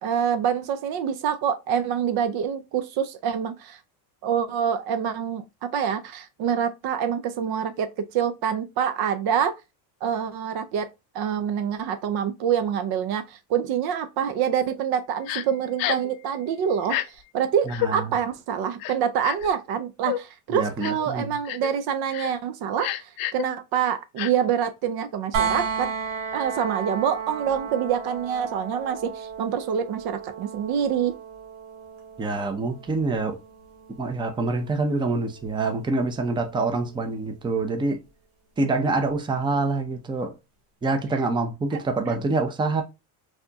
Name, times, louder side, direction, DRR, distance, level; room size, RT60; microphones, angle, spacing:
voice 1, 0.0-3.8 4.2-9.6 10.0-10.9 11.1-17.0 17.3-25.9 26.3-31.2 41.7-41.8, right 8 dB, 55° right, 0.6 m, -26 dB
Crying sobbing, 15.3-15.4 15.8-16.1 16.8-17.1 17.7-17.9 18.8-19.5 20.1-20.2 20.8-21.1 21.5-21.7 22.1-22.3 22.8-23.4 24.2-24.3, left 14 dB, 50° left, 0.5 m, -29 dB
voice 2, 17.7-18.1 20.5-21.3 32.2-33.4 34.0-38.0 38.6-40.4 40.8-42.8, right 3 dB, 10° right, 0.6 m, -26 dB
sound 1, 25.3-37.1 39.1-39.2, right 6 dB, 85° right, 1.6 m, -34 dB
4.2 x 2.8 x 2.2 m
supercardioid pair, 115°, 45 cm